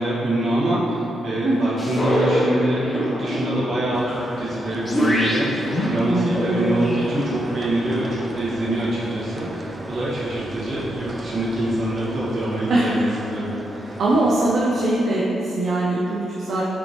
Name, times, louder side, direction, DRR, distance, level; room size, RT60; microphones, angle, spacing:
voice 1, 0.0-14.0, right 1 dB, 55° right, -8 dB, 1.3 m, -25 dB
voice 2, 1.4-1.7 6.1-6.7 12.7-12.9 14.0-16.6, right 2 dB, 75° right, -5 dB, 0.5 m, -21 dB
sound 1, 1.8-8.1, equal, 20° left, 0.7 m, -25 dB
sound 2, 3.9-15.0, right 1 dB, 20° right, 0.3 m, -37 dB
6.2 x 2.8 x 2.9 m, 3.0 s
cardioid pair, 90°, 0 cm